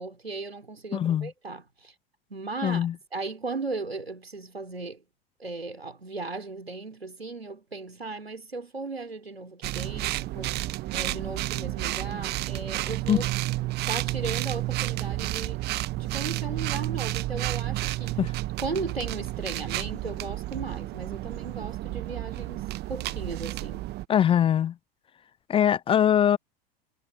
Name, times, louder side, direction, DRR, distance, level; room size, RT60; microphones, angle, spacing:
voice 1, 0.0-1.9 2.3-5.0 5.4-10.6 10.9-13.2 13.9-15.6 15.9-18.2 18.6-23.9, right 3 dB, 90° right, 3.8 m, -36 dB
voice 2, 0.9-1.3 2.6-2.9 13.1-13.2 18.2-18.3 24.1-24.7 25.5-26.4, left 9 dB, 20° left, 0.4 m, -22 dB
sound 1, 9.6-24.1, right 18 dB, 35° right, 0.9 m, -31 dB
figure-of-eight pair, 90°, 30 cm